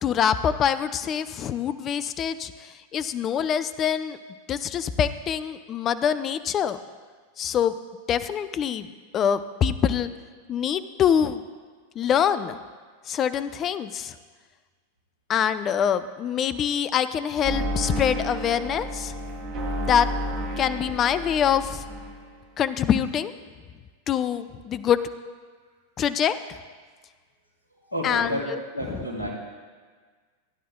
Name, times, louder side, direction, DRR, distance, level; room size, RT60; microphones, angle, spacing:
voice 1, 0.0-4.2 4.5-6.8 7.4-7.7 8.1-10.1 10.5-11.4 12.0-12.6 13.1-14.1 15.3-19.1 19.8-20.1 20.6-21.8 22.6-23.3 24.1-25.0 26.0-26.3 28.0-28.4, left 8 dB, 30° left, 13 dB, 0.4 m, -24 dB
sound 1, 17.4-22.3, equal, 45° right, 2.7 m, -31 dB
voice 2, 27.8-28.5 28.7-29.3, equal, 75° left, -3 dB, 3.1 m, -30 dB
16.5 x 10.0 x 2.2 m, 1.5 s
figure-of-eight pair, 90°, 0 cm